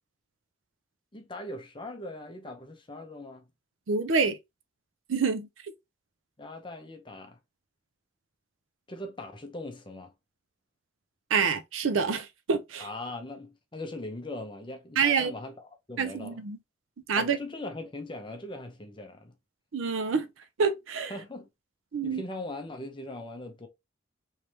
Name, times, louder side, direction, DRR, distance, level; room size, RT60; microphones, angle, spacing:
voice 1, 1.1-3.4 6.4-7.4 8.9-10.1 12.8-16.4 17.1-19.3 21.1-21.5 22.0-23.7, left 2 dB, 25° left, 0.7 m, -40 dB
voice 2, 3.9-4.4 5.1-5.5 11.3-12.9 15.0-15.3 16.0-16.6 17.1-17.4 19.7-20.3 20.6-21.1 21.9-22.2, right 5 dB, 90° right, 0.5 m, -27 dB
3.4 x 3.2 x 2.8 m
head